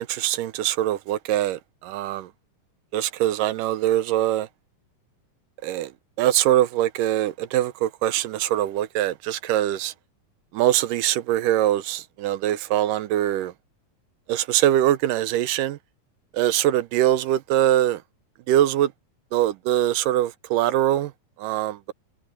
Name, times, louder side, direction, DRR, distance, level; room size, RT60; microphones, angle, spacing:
voice 1, 0.0-2.3 2.9-4.5 5.6-5.9 6.2-9.9 10.5-13.5 14.3-15.8 16.3-18.0 18.5-18.9 19.3-21.1 21.4-21.9, right 13 dB, 85° right, 2.4 m, -23 dB
omnidirectional pair, 3.9 m